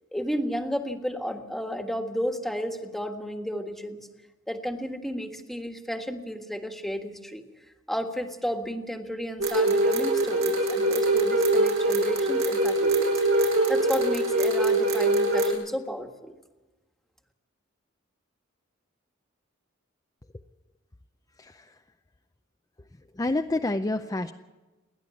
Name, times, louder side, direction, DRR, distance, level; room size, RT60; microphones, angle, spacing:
voice 1, 0.1-4.1 4.5-7.4 7.9-16.4, equal, ahead, 5 dB, 1.6 m, -33 dB
sound 1, 9.4-15.5, right 2 dB, 85° right, 7.1 m, -23 dB
voice 2, 23.2-24.3, left 2 dB, 20° left, 6 dB, 0.6 m, -27 dB
29.5 x 11.0 x 8.5 m, 1.2 s
head